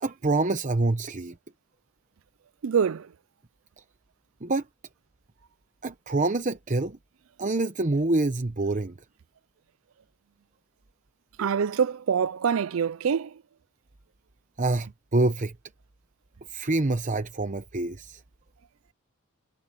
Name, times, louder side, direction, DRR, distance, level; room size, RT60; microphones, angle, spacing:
voice 1, 0.0-1.3 4.4-4.6 5.8-7.0 7.4-8.9 14.6-15.5 16.5-18.2, right 2 dB, 40° right, 0.9 m, -26 dB
voice 2, 2.6-3.1 11.4-13.4, right 7 dB, 80° right, 0.4 m, -25 dB
head